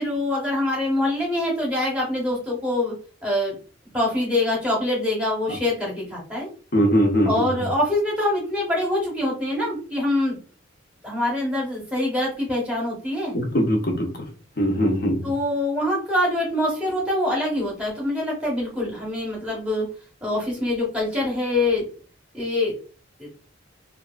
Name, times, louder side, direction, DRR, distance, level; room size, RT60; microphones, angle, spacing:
voice 1, 0.0-3.0 3.2-3.5 3.9-6.5 7.3-10.4 11.0-13.3 15.2-19.9 20.2-21.9 22.3-22.7 23.2-23.3, left 1 dB, 5° right, -4 dB, 0.9 m, -24 dB
voice 2, 6.7-7.5 13.3-14.2 14.6-15.2, equal, 45° left, 2 dB, 0.7 m, -21 dB
2.6 x 2.4 x 2.3 m, 0.36 s
head